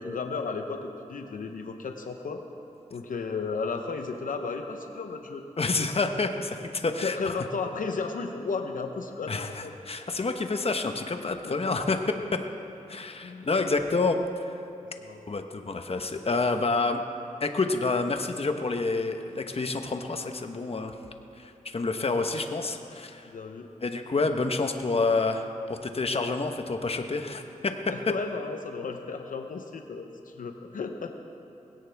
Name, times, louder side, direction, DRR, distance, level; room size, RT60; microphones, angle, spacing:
voice 1, 0.0-2.4 2.9-5.4 7.0-9.7 11.4-11.5 13.2-13.5 15.0-15.2 23.3-23.7 27.9-31.1, left 4 dB, 85° left, 5 dB, 0.9 m, -34 dB
voice 2, 5.6-7.3 9.3-12.0 12.3-12.4 12.9-14.5 15.3-17.0 17.4-20.9 21.4-23.3 23.8-27.7, left 3 dB, 45° left, 6 dB, 1.1 m, -28 dB
20.0 x 17.0 x 3.5 m, 2.7 s
cardioid pair, 55°, 14 cm